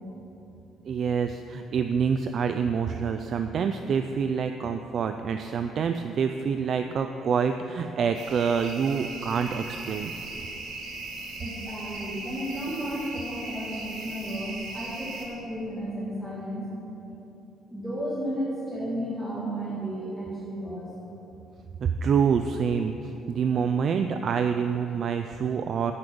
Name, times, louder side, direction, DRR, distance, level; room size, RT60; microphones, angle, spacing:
voice 1, 0.9-10.1 21.8-25.9, right 6 dB, 45° right, 7 dB, 0.3 m, -27 dB
sound 1, 8.1-15.3, right 2 dB, 85° right, 1.7 m, -38 dB
voice 2, 11.4-16.7 17.7-20.9, equal, 5° right, -8 dB, 1.6 m, -33 dB
9.6 x 5.2 x 7.7 m, 3.0 s
cardioid pair, 150°, 0 cm